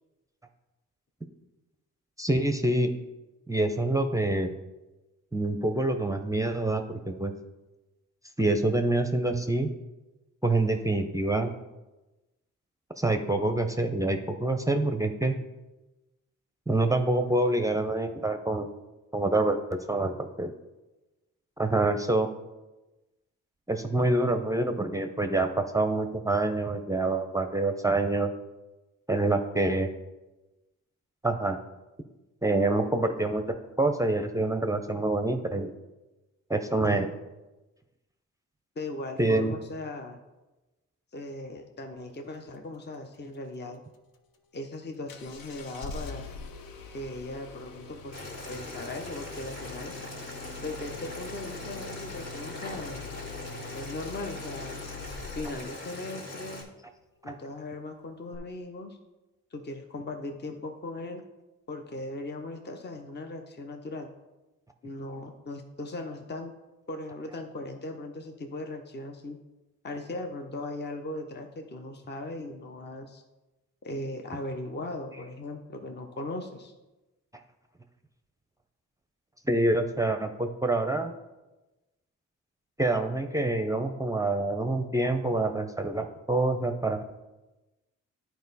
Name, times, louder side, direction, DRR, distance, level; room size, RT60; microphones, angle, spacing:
voice 1, 2.2-2.9 3.5-4.5 5.3-7.3 8.4-9.7 10.4-11.5 13.0-15.4 16.7-18.7 19.1-20.5 21.6-22.3 23.7-28.3 29.1-29.9 31.2-31.6 32.4-33.4 33.8-35.7 36.5-37.1 39.2-39.5 57.3-57.4 79.5-81.1 82.8-87.0, right 2 dB, 10° right, 6 dB, 0.6 m, -26 dB
voice 2, 36.8-37.2 38.8-40.2 41.1-43.8 44.5-46.3 46.9-48.2 48.5-49.9 50.6-53.0 53.7-54.8 55.3-56.7 57.2-59.0 59.5-61.2 61.7-64.1 64.8-66.5 66.9-69.4 69.8-73.2 73.8-76.7, left 2 dB, 30° left, 5 dB, 0.8 m, -38 dB
Engine starting, 45.1-55.7 58.3-58.4, left 4 dB, 80° left, 0.7 m, -43 dB
Boiling, 48.1-56.6, left 2 dB, 50° left, 2.2 m, -41 dB
9.4 x 4.5 x 4.1 m, 1.1 s
supercardioid pair, 55°, 34 cm